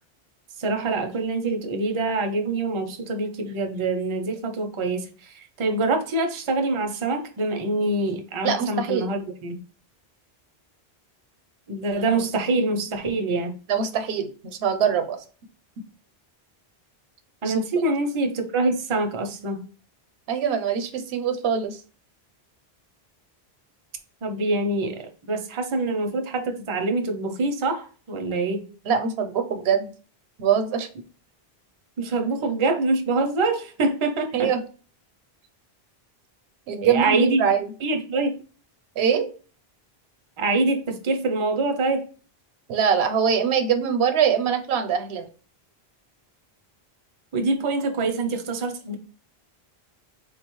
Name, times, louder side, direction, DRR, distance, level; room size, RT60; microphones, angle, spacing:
voice 1, 0.6-9.6 11.7-13.6 17.4-19.6 24.2-28.7 32.0-34.5 36.8-37.4 37.8-38.3 40.4-42.0 47.3-49.0, right 3 dB, 40° right, 0.4 m, -25 dB
voice 2, 8.4-9.1 13.7-15.2 17.5-17.9 20.3-21.8 28.9-29.9 30.4-30.9 34.3-34.6 36.7-37.7 39.0-39.3 42.7-45.3, right 7 dB, 80° right, 0.8 m, -23 dB
3.8 x 2.3 x 3.0 m
omnidirectional pair, 1.1 m